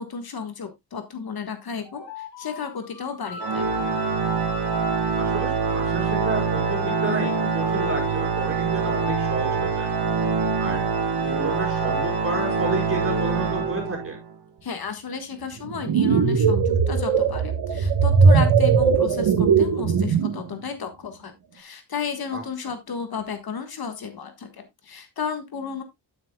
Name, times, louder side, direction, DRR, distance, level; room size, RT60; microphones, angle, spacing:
voice 1, 0.0-3.7 14.6-25.8, left 6 dB, 60° left, 7 dB, 1.6 m, -33 dB
sound 1, 1.8-8.2 8.7-13.3, left 7 dB, 85° left, 2.0 m, -38 dB
Organ, 3.4-14.2, right 5 dB, 65° right, 1.5 m, -25 dB
voice 2, 5.2-9.9 10.6-10.8 11.2-14.2 22.3-22.4, right 2 dB, 30° right, -1 dB, 4.8 m, -31 dB
sound 2, 15.6-20.4, right 5 dB, 90° right, 1.4 m, -19 dB
9.7 x 8.7 x 2.3 m, 0.19 s
wide cardioid pair, 130°, 42 cm